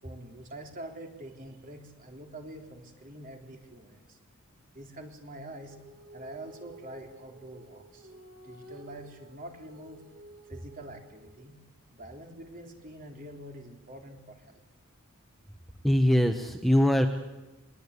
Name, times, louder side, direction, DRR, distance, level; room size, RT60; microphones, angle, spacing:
voice 1, 0.0-4.2 4.7-5.8 6.1-8.1 8.4-10.0 10.4-11.5 11.9-14.6, right 1 dB, 40° right, 2 dB, 3.6 m, -45 dB
Female singing, 5.7-11.4, right 1 dB, 90° right, 6.6 m, -52 dB
voice 2, 15.8-17.1, equal, ahead, 5 dB, 1.1 m, -22 dB
24.0 x 22.0 x 8.4 m, 1.1 s
head